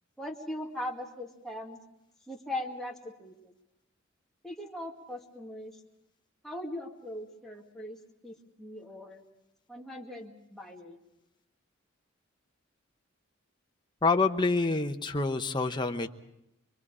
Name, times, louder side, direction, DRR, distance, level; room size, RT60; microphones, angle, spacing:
voice 1, 0.2-1.8 2.3-3.5 4.4-5.8 6.4-9.2 9.7-11.0, left 1 dB, ahead, -2 dB, 2.1 m, -40 dB
voice 2, 14.0-16.1, left 3 dB, 20° left, 5 dB, 0.9 m, -27 dB
25.5 x 23.0 x 4.9 m, 0.86 s
head